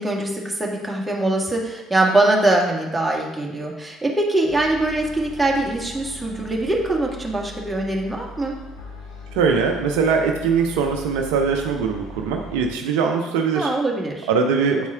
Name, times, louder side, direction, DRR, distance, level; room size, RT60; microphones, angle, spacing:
voice 1, 0.0-8.6 13.5-14.3, right 2 dB, 10° right, -2 dB, 1.7 m, -22 dB
sound 1, 4.5-12.7, equal, 80° left, 1.9 m, -39 dB
voice 2, 9.3-13.7 14.3-14.9, right 5 dB, 80° right, 3 dB, 0.6 m, -21 dB
8.6 x 4.2 x 3.6 m, 1.0 s
hypercardioid pair, 60°, 0 cm